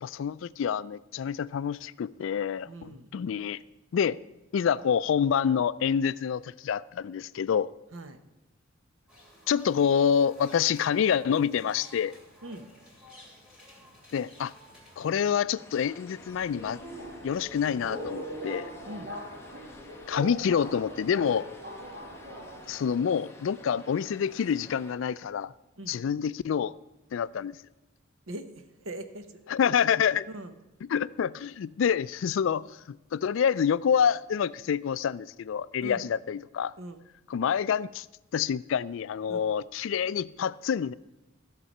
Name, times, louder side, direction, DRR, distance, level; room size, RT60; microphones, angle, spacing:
voice 1, 0.0-3.6 3.9-4.2 4.5-7.7 9.5-12.1 14.1-14.5 15.0-16.8 17.2-18.7 20.1-21.5 22.7-25.5 25.9-26.7 27.1-27.6 29.5-30.3 30.9-32.7 33.1-36.7 37.3-38.1 38.3-40.9, left 7 dB, 65° left, 18 dB, 0.3 m, -27 dB
voice 2, 2.6-3.1 7.9-8.2 12.4-12.7 18.8-19.1 25.8-26.0 28.3-29.5 30.3-30.5 35.8-36.0 36.8-37.0 39.3-39.4, right 1 dB, 75° right, 9 dB, 1.0 m, -41 dB
sound 1, 9.1-15.3, left 1 dB, 5° right, 2.7 m, -53 dB
sound 2, 15.5-24.9, left 2 dB, 15° left, 1.0 m, -51 dB
Subway metro underground, 16.1-22.9, equal, 45° right, 2.2 m, -41 dB
14.5 x 6.7 x 5.4 m, 1.0 s
head